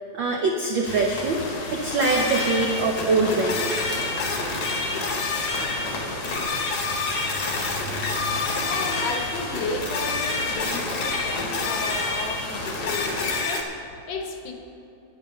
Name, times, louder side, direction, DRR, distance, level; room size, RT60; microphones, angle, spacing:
voice 1, 0.1-1.4 1.7-3.8, right 3 dB, 85° right, 1 dB, 1.0 m, -23 dB
sound 1, 0.8-13.4, left 2 dB, 85° left, 3.2 m, -32 dB
sound 2, 2.0-13.6, left 3 dB, 45° left, 1.6 m, -29 dB
voice 2, 8.5-14.5, left 3 dB, 70° left, 3 dB, 2.3 m, -33 dB
9.8 x 9.7 x 6.6 m, 2.9 s
omnidirectional pair, 3.3 m